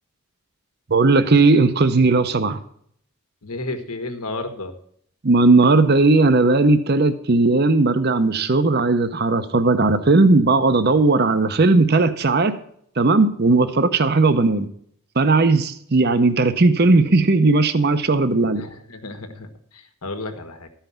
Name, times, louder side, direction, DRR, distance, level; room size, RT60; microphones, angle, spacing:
voice 1, 0.9-2.6 5.2-12.5 13.0-14.7 15.2-18.6, right 3 dB, 45° right, 11 dB, 0.7 m, -17 dB
voice 2, 3.4-4.7 18.5-20.7, left 2 dB, 85° left, 7 dB, 1.5 m, -32 dB
13.5 x 5.7 x 7.0 m, 0.65 s
head